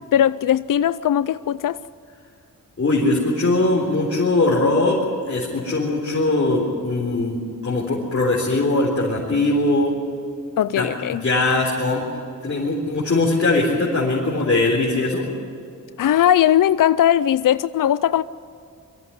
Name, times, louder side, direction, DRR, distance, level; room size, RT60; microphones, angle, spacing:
voice 1, 0.1-1.8 10.6-11.2 16.0-18.2, left 10 dB, 70° left, 0.5 m, -19 dB
voice 2, 2.8-5.0 5.3-9.9 10.8-15.2, left 2 dB, 45° left, 3.8 m, -21 dB
22.5 x 14.5 x 9.9 m
wide cardioid pair, 90°, 33 cm